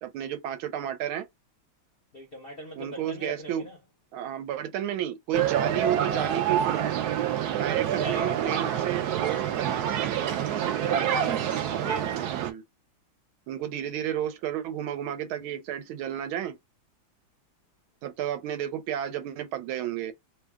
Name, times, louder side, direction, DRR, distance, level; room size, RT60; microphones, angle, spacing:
voice 1, 0.0-1.3 2.8-3.7 4.1-7.1 7.6-10.2 12.3-12.6 13.5-16.6 18.0-20.1, right 10 dB, 85° right, 1.5 m, -32 dB
voice 2, 2.1-3.8 7.7-8.6 10.8-11.4 11.8-12.2, right 1 dB, 65° left, 0.5 m, -40 dB
sound 1, 5.3-12.5, right 9 dB, 70° right, 1.0 m, -27 dB
3.3 x 2.2 x 3.4 m
omnidirectional pair, 2.2 m